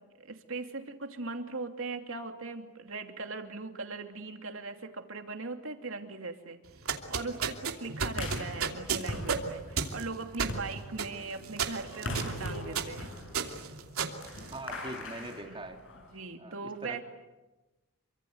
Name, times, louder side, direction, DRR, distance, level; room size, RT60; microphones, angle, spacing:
voice 1, 0.2-6.6 7.1-13.2 15.4-15.6 16.1-17.0, right 3 dB, 65° right, 5 dB, 2.9 m, -39 dB
sound 1, 6.7-15.1, right 5 dB, 80° right, 2.8 m, -34 dB
sound 2, 8.2-16.2, left 1 dB, 60° left, 7.8 m, -41 dB
voice 2, 14.5-15.8 16.4-17.0, right 1 dB, 25° right, 4 dB, 2.9 m, -42 dB
28.5 x 25.0 x 8.0 m, 1.1 s
head